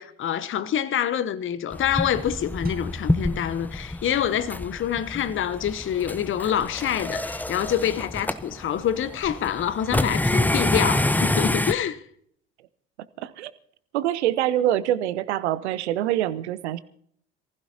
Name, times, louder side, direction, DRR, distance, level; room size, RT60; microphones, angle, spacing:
voice 1, 0.0-12.0, left 9 dB, 35° left, 0.9 m, -26 dB
sound 1, 1.7-11.7, left 1 dB, 5° left, 0.8 m, -27 dB
sound 2, 2.7-4.5, left 1 dB, 25° right, 2.0 m, -42 dB
voice 2, 13.9-16.8, right 12 dB, 75° right, 0.9 m, -25 dB
27.0 x 15.5 x 2.9 m
figure-of-eight pair, 55°, 34 cm